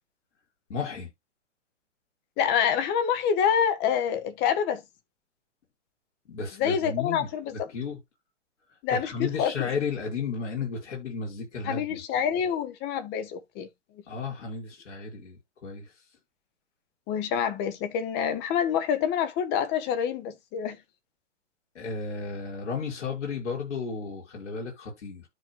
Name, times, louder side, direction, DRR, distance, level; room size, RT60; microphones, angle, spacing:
voice 1, 0.7-1.1 6.3-8.0 8.9-12.0 14.1-15.8 21.7-25.2, left 5 dB, 65° left, 5.8 m, -33 dB
voice 2, 2.4-4.8 6.6-7.7 8.8-9.7 11.6-13.7 17.1-20.8, left 8 dB, 25° left, 1.4 m, -27 dB
13.0 x 4.4 x 2.3 m
hypercardioid pair, 125°, 37 cm